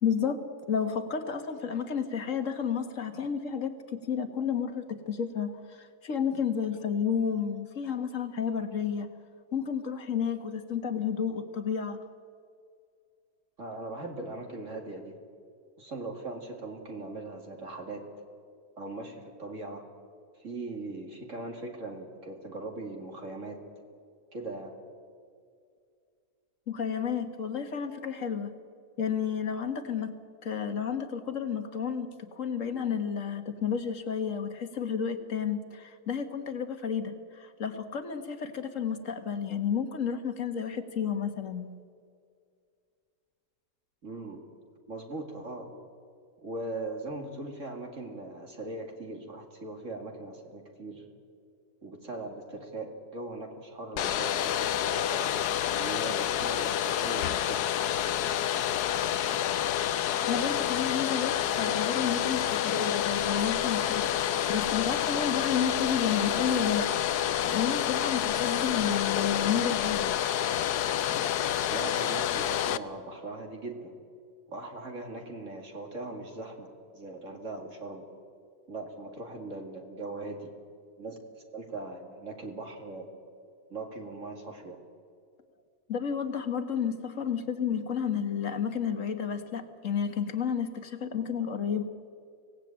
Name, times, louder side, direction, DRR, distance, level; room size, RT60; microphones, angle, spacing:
voice 1, 0.0-9.1 9.5-12.0 26.7-28.5 29.0-30.2 30.4-41.7 60.3-66.9 67.5-70.2 85.9-91.8, left 7 dB, 55° left, 8 dB, 1.8 m, -31 dB
voice 2, 13.6-15.2 15.8-18.1 18.8-19.9 20.4-23.6 24.3-24.8 44.0-44.4 44.9-45.7 46.4-51.0 51.8-55.3 55.8-57.7 61.9-62.0 71.7-74.0 74.5-78.0 78.7-80.5 81.0-83.2 83.7-84.8, right 2 dB, 50° right, 2 dB, 2.6 m, -40 dB
Domestic sounds home sounds, 54.0-72.8, left 11 dB, 85° left, 1.3 m, -28 dB
sound 1, 63.1-70.2, equal, 30° right, 2.4 m, -52 dB
25.0 x 17.5 x 8.9 m, 2.3 s
omnidirectional pair, 1.6 m